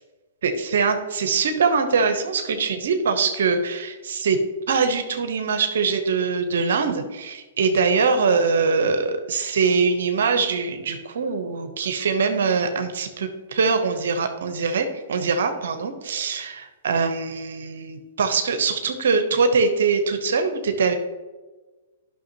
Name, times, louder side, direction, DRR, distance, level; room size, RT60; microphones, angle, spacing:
voice 1, 0.4-4.4 4.7-20.9, right 5 dB, 70° right, 7 dB, 0.9 m, -23 dB
11.0 x 5.9 x 2.9 m, 1.2 s
hypercardioid pair, 115°, 0 cm